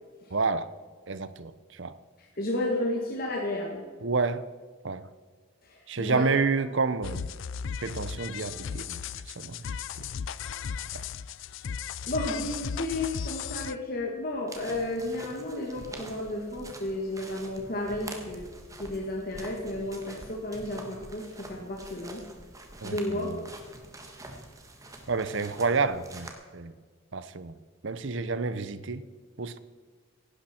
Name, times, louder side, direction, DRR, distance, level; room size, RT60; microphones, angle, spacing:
voice 1, 0.3-0.7 1.1-1.9 4.0-4.4 4.8-5.0 5.9-7.3 7.8-9.0 9.4-9.6 9.9-10.1 10.9-11.0 22.8-23.4 25.1-26.7 27.1-27.5 27.8-29.0 29.4-29.6, right 4 dB, 60° right, 14 dB, 0.7 m, -29 dB
voice 2, 2.2-3.8 5.6-6.3 12.1-18.5 18.8-22.2 22.8-23.3, left 1 dB, 45° left, -1 dB, 1.8 m, -32 dB
sound 1, 7.0-13.7, left 7 dB, 60° left, 0.4 m, -36 dB
sound 2, 14.5-26.3, right 2 dB, 15° right, 1.5 m, -46 dB
16.0 x 11.5 x 4.4 m, 1.5 s
head